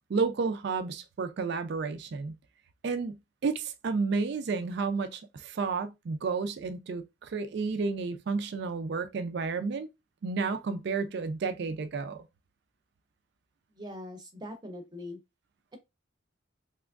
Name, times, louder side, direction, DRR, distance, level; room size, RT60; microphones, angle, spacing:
voice 1, 0.1-2.4 2.8-9.9 10.2-12.2, right 4 dB, 55° right, 0.4 m, -31 dB
voice 2, 13.7-15.2, left 1 dB, 20° right, 0.6 m, -42 dB
3.4 x 2.9 x 2.4 m
head